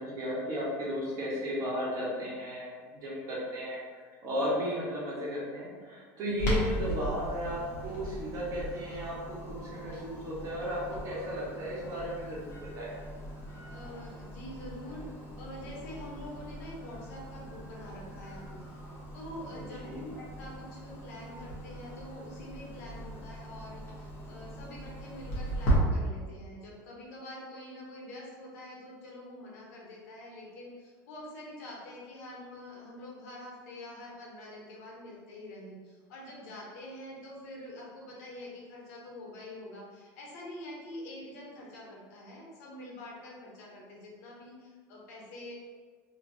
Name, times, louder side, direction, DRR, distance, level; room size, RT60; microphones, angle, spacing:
voice 1, 0.0-12.9 19.5-20.0, equal, 40° right, -6 dB, 1.1 m, -35 dB
Clock, 6.4-25.8, right 1 dB, 35° left, 1.1 m, -38 dB
voice 2, 13.7-18.7 19.1-45.5, left 1 dB, 90° left, -3 dB, 0.9 m, -46 dB
3.1 x 2.7 x 2.7 m, 1.5 s
cardioid pair, 150°, 8 cm